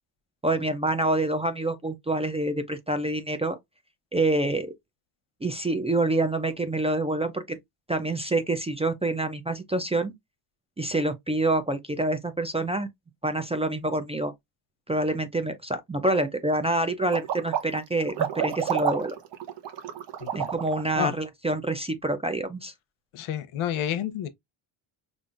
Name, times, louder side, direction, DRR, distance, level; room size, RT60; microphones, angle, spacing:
voice 1, 0.4-3.6 4.1-4.7 5.4-7.6 7.9-10.1 10.8-12.9 13.2-14.3 14.9-19.1 20.3-22.7, right 2 dB, 15° right, 0.3 m, -27 dB
sound 1, 17.1-20.9, right 9 dB, 60° right, 0.9 m, -29 dB
voice 2, 20.2-20.5 21.0-21.1 23.1-24.3, left 10 dB, 80° left, 0.8 m, -30 dB
5.2 x 2.5 x 2.4 m
cardioid pair, 125°, 49 cm